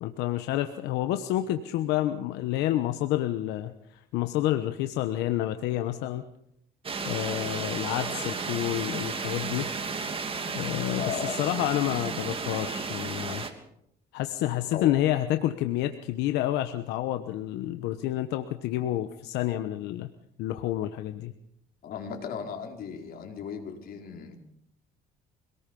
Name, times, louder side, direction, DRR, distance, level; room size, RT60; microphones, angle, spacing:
voice 1, 0.0-6.2 7.0-9.7 10.5-11.0 11.3-13.5 14.1-20.1 20.4-21.3, left 13 dB, 90° left, 8 dB, 1.2 m, -29 dB
sound 1, 6.8-13.5, right 5 dB, 35° right, 2.8 m, -33 dB
voice 2, 11.0-11.4 14.7-14.9 21.8-24.4, left 6 dB, 65° left, 3 dB, 4.5 m, -36 dB
25.5 x 19.0 x 5.4 m, 0.74 s
cardioid pair, 110°, 17 cm